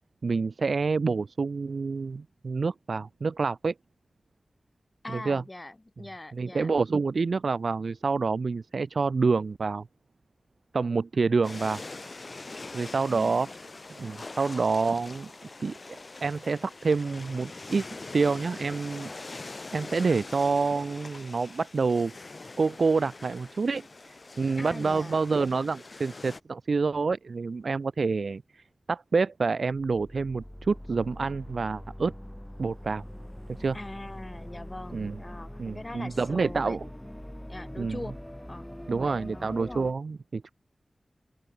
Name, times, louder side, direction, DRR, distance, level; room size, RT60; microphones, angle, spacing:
voice 1, 0.2-3.7 5.1-5.4 6.3-9.9 10.7-11.8 12.7-13.5 14.0-15.3 15.6-15.8 16.2-17.8 18.1-19.1 19.7-22.2 22.6-23.9 24.4-32.1 32.6-33.0 33.6-33.8 34.9-35.2 35.6-36.8 37.8-38.0 38.9-40.5, right 4 dB, 75° right, 0.5 m, -27 dB
voice 2, 5.0-6.7 13.1-13.5 24.6-25.1 33.7-37.1 37.5-38.2 38.5-39.9, left 2 dB, 30° left, 3.9 m, -42 dB
sound 1, 11.4-26.4, left 3 dB, 50° left, 2.4 m, -43 dB
sound 2, 29.7-39.9, equal, 10° left, 2.3 m, -43 dB
open air
wide cardioid pair, 65°, 0 cm